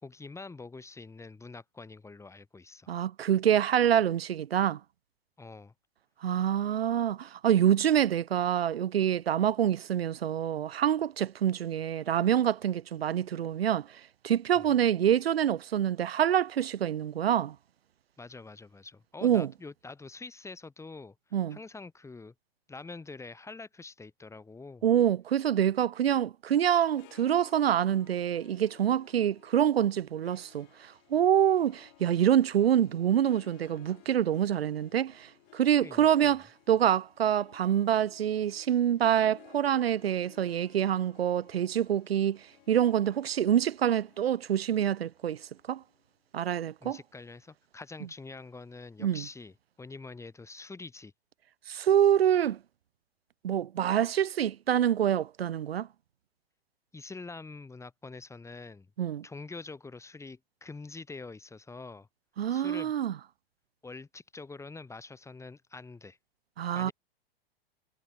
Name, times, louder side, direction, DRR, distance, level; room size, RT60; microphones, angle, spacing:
voice 1, 0.0-2.9 5.4-5.7 14.5-14.7 18.2-21.1 21.5-22.3 22.7-24.9 35.8-36.4 46.8-51.1 56.9-58.9 59.2-62.1 62.5-62.9 63.8-66.2 66.7-66.9, left 3 dB, 10° left, 3.6 m, -45 dB
voice 2, 2.9-4.8 6.2-13.9 14.2-17.6 19.2-19.5 21.3-21.6 24.8-45.8 46.3-47.0 49.0-49.2 51.7-52.6 53.4-55.9 59.0-59.2 62.4-63.1 66.6-66.9, right 10 dB, 80° right, 0.6 m, -26 dB
Harp, 26.7-46.1, left 33 dB, 45° left, 5.8 m, -59 dB
figure-of-eight pair, 105°, 30 cm